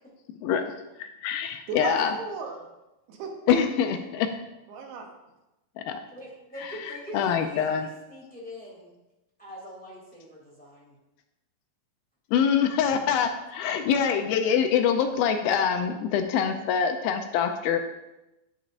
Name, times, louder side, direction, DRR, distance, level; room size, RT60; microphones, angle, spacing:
voice 1, 0.4-2.1 3.5-4.3 5.8-6.0 6.6-6.7 7.1-7.9 12.3-17.8, left 7 dB, 80° left, 6 dB, 2.3 m, -25 dB
voice 2, 1.7-2.7 3.1-3.4 4.7-5.1 13.7-14.1, right 4 dB, 85° right, 1 dB, 3.1 m, -36 dB
voice 3, 6.1-8.9 9.4-11.0, equal, 5° left, -5 dB, 1.8 m, -43 dB
9.4 x 8.9 x 2.5 m, 0.96 s
omnidirectional pair, 4.4 m